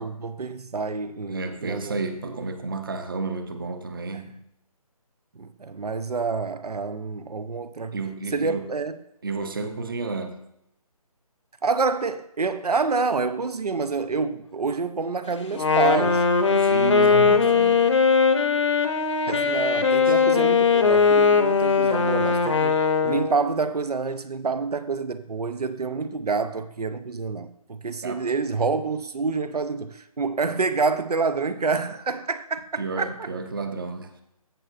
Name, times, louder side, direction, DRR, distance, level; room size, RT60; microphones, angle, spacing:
voice 1, 0.0-2.0 4.1-4.2 5.4-7.9 8.3-9.0 11.6-16.2 19.3-33.3, right 4 dB, 85° right, 0.7 m, -27 dB
voice 2, 1.3-4.4 7.9-8.7 9.2-10.4 16.5-17.9 20.1-20.2 28.0-28.3 32.8-34.1, right 3 dB, 35° right, 0.7 m, -31 dB
Wind instrument woodwind instrument, 15.5-23.5, left 5 dB, 50° left, 0.8 m, -20 dB
14.5 x 6.1 x 2.5 m
figure-of-eight pair, 165°, 19 cm